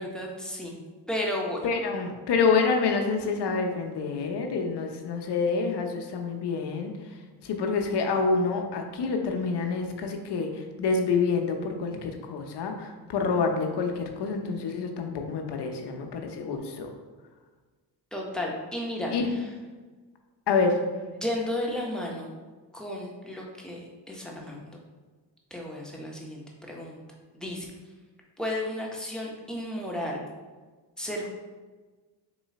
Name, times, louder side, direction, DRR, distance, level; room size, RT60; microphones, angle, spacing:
voice 1, 0.0-1.7 18.1-19.1 21.1-22.3 22.7-24.8 25.5-27.0 27.3-27.7 28.4-30.2 31.0-31.3, left 1 dB, ahead, -2 dB, 1.1 m, -33 dB
voice 2, 1.6-6.9 7.4-16.9 19.1-19.3 20.5-20.8, left 4 dB, 60° left, 3 dB, 0.8 m, -27 dB
3.9 x 3.1 x 4.1 m, 1.3 s
supercardioid pair, 70°, 46 cm